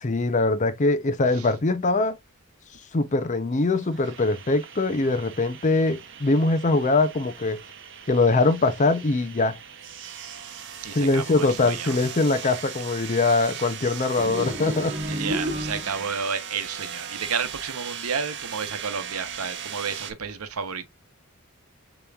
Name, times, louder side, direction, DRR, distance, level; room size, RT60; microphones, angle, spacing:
voice 1, 0.0-2.2 2.9-7.6 8.1-9.6 10.9-14.9, left 3 dB, 35° left, 0.6 m, -22 dB
sound 1, 3.5-20.1, right 8 dB, 55° right, 0.8 m, -39 dB
voice 2, 10.8-12.0 13.8-14.1 15.1-20.9, right 6 dB, 80° right, 0.8 m, -31 dB
sound 2, 14.2-16.2, equal, 30° right, 1.3 m, -31 dB
6.7 x 3.0 x 2.3 m
head